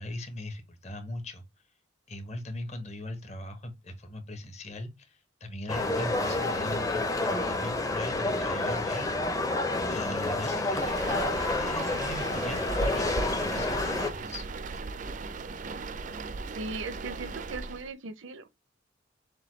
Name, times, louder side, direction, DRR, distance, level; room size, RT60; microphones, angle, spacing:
voice 1, 0.0-1.4 2.1-9.5 9.9-14.4, left 1 dB, 35° left, 1.1 m, -40 dB
sound 1, 5.7-14.1, left 2 dB, 20° left, 0.7 m, -29 dB
sound 2, 10.8-17.9, right 3 dB, 40° right, 0.4 m, -37 dB
voice 2, 16.5-18.5, right 3 dB, 85° right, 0.6 m, -38 dB
6.6 x 2.3 x 3.1 m
head